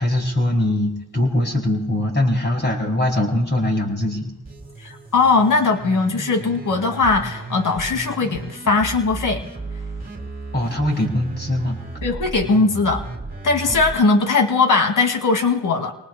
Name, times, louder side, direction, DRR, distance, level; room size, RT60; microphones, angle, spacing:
voice 1, 0.0-4.3 10.5-11.8 13.6-13.8, left 1 dB, 25° left, 1 dB, 5.2 m, -22 dB
sound 1, 4.4-13.9, right 3 dB, 20° right, 3.4 m, -34 dB
voice 2, 4.8-9.4 12.0-13.0 13.4-15.9, left 4 dB, 45° left, 5 dB, 2.2 m, -19 dB
27.5 x 19.0 x 2.2 m, 0.91 s
cardioid pair, 75°, 44 cm